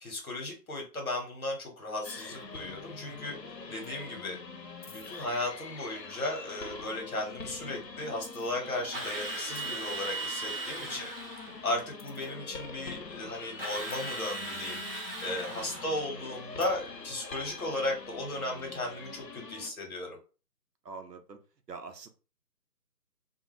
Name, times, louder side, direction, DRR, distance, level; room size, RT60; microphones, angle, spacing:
voice 1, 0.0-3.4 3.7-4.4 4.9-11.1 11.6-20.2, left 2 dB, 55° left, 1 dB, 1.3 m, -36 dB
sound 1, 2.0-19.7, left 4 dB, 80° left, 0.9 m, -44 dB
voice 2, 2.9-3.4 10.8-11.1 15.5-16.0 20.8-21.4 21.7-22.1, right 4 dB, 75° right, 7 dB, 0.8 m, -47 dB
Drill, 8.9-11.6 13.6-16.1, right 2 dB, 35° right, 0.7 m, -38 dB
2.5 x 2.3 x 3.1 m, 0.35 s
figure-of-eight pair, 150°, 49 cm